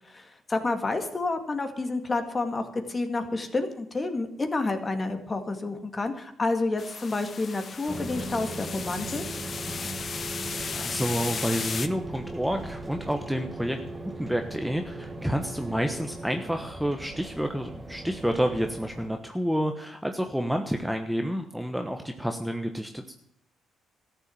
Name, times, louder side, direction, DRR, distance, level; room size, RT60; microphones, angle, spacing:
voice 1, 0.1-9.2, left 3 dB, 25° left, 6 dB, 2.3 m, -29 dB
sound 1, 6.8-11.9, left 5 dB, 45° left, 1.0 m, -35 dB
sound 2, 7.9-19.1, right 2 dB, 20° right, 2.1 m, -38 dB
voice 2, 10.8-13.8 14.2-23.1, equal, ahead, 5 dB, 1.2 m, -29 dB
14.0 x 7.2 x 9.5 m, 0.71 s
cardioid pair, 90°, 0 cm